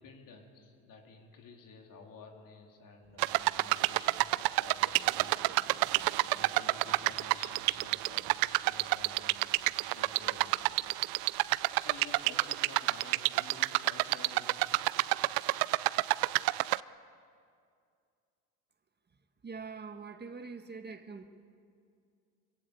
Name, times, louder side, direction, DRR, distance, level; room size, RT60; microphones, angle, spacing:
voice 1, 0.0-5.5 6.3-10.8 11.7-14.8, left 4 dB, 60° left, 2 dB, 3.9 m, -52 dB
sound 1, 3.0-12.5, right 5 dB, 60° right, 3.5 m, -58 dB
sound 2, 3.2-16.8, right 22 dB, 80° right, 0.6 m, -29 dB
voice 2, 19.4-21.3, right 4 dB, 25° right, 7 dB, 1.6 m, -44 dB
25.0 x 16.0 x 8.4 m, 2.3 s
supercardioid pair, 75°, 36 cm